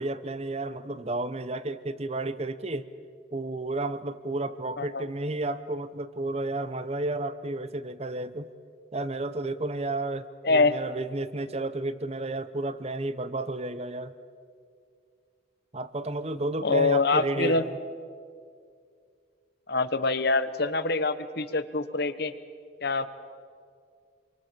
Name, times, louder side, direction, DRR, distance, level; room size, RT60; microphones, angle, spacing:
voice 1, 0.0-2.9 3.3-8.5 8.9-14.1 15.7-17.8, right 2 dB, 35° right, 14 dB, 0.9 m, -32 dB
voice 2, 10.4-10.7 16.6-17.6 19.7-22.3 22.8-23.1, left 3 dB, 55° left, 13 dB, 1.1 m, -25 dB
27.5 x 23.5 x 7.5 m, 2.2 s
head